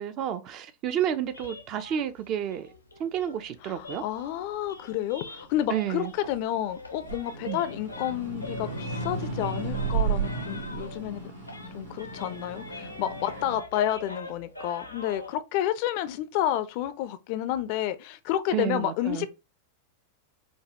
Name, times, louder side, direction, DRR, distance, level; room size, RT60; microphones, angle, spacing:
voice 1, 0.0-2.7 3.0-4.0 5.7-6.1 7.5-7.6 18.5-19.3, right 10 dB, 40° right, 0.4 m, -30 dB
sound 1, 1.3-6.4 6.7-11.2 11.4-15.3, left 2 dB, 85° left, 0.6 m, -43 dB
voice 2, 3.6-11.2 11.7-19.3, left 12 dB, 45° left, 0.4 m, -30 dB
sound 2, 4.0-6.5 6.9-13.6, right 5 dB, 80° right, 1.7 m, -34 dB
5.3 x 2.2 x 2.8 m
figure-of-eight pair, 90°, 0 cm